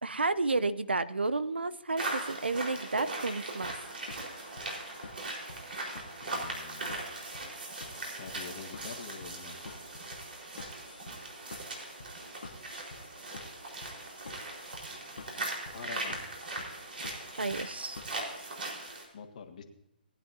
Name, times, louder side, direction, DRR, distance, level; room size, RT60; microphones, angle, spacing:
voice 1, 0.0-3.7 17.4-18.0, right 3 dB, 80° right, 15 dB, 0.6 m, -31 dB
sound 1, 2.0-19.0, right 2 dB, 65° right, 4.2 m, -40 dB
sound 2, 3.6-18.4, left 3 dB, 65° left, 1.4 m, -49 dB
voice 2, 6.1-7.2 8.1-9.8 15.7-16.2 19.1-19.6, left 5 dB, 45° left, 5 dB, 1.6 m, -46 dB
18.5 x 10.0 x 2.7 m, 0.93 s
figure-of-eight pair, 135°, 6 cm